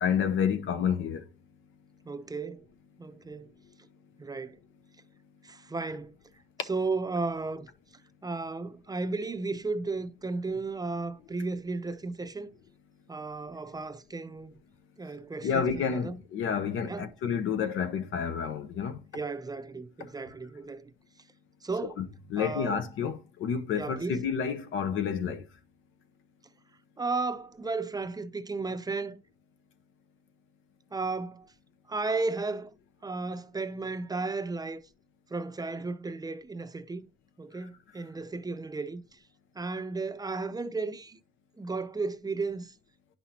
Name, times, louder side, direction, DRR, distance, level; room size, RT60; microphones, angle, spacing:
voice 1, 0.0-1.2 15.4-19.0 20.0-20.1 22.0-22.1 22.3-25.5, left 7 dB, 80° left, 0.9 m, -29 dB
voice 2, 2.1-2.6 3.0-3.5 4.2-4.6 5.4-6.1 6.6-7.7 8.2-12.5 13.1-14.5 15.0-16.2 16.9-17.1 19.1-20.9 21.6-22.0 22.4-22.8 23.8-24.2 27.0-29.2 30.9-31.5 31.9-32.7 33.0-34.8 35.3-37.1 37.4-39.2 39.5-41.2 41.6-42.7, right 3 dB, 20° right, 0.6 m, -34 dB
10.0 x 5.6 x 2.9 m
cardioid pair, 90°, 20 cm